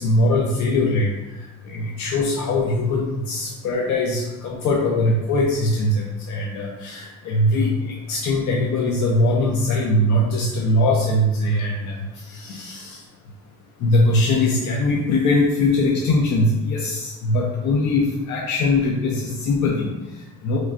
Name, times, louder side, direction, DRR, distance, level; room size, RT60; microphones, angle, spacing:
voice 1, 0.0-13.1 13.8-20.6, left 2 dB, 70° left, -2 dB, 0.5 m, -21 dB
3.1 x 2.4 x 2.4 m, 1.0 s
cardioid pair, 90°, 30 cm